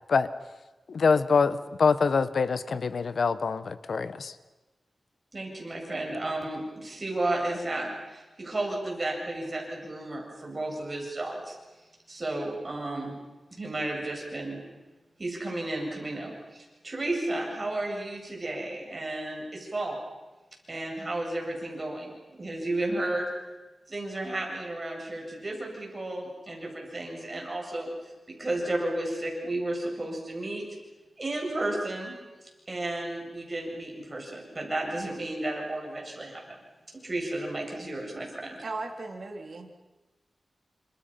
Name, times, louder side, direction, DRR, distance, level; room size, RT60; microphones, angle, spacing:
voice 1, 0.9-4.3, left 5 dB, 75° left, 13 dB, 1.2 m, -25 dB
voice 2, 5.3-11.6 12.1-13.2 13.5-14.6 15.2-20.0 20.7-23.3 23.9-28.1 28.4-30.7 31.2-32.1 32.7-36.6 37.0-38.6, right 2 dB, 35° right, 0 dB, 8.0 m, -33 dB
voice 3, 38.6-39.8, right 3 dB, 60° right, 3 dB, 3.8 m, -37 dB
29.5 x 27.0 x 5.9 m, 1.1 s
wide cardioid pair, 80°, 0 cm